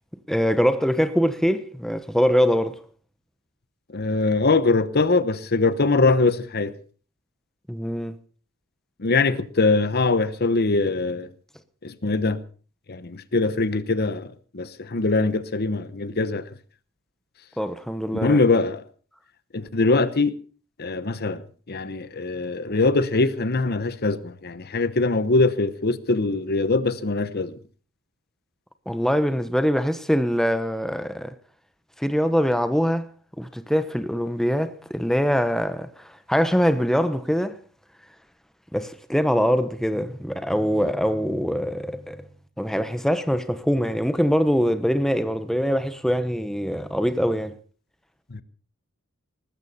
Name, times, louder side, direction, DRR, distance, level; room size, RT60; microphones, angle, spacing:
voice 1, 0.3-2.8 7.7-8.1 17.6-18.4 28.9-31.3 32.0-33.0 33.4-37.6 38.7-42.2 42.6-47.5, equal, ahead, 1.0 m, -23 dB
voice 2, 3.9-6.8 9.0-11.3 11.8-12.4 12.9-16.5 18.1-18.9 19.5-20.4 20.8-27.6 48.3-48.4, left 3 dB, 50° left, 1.0 m, -22 dB
19.5 x 15.5 x 4.3 m
head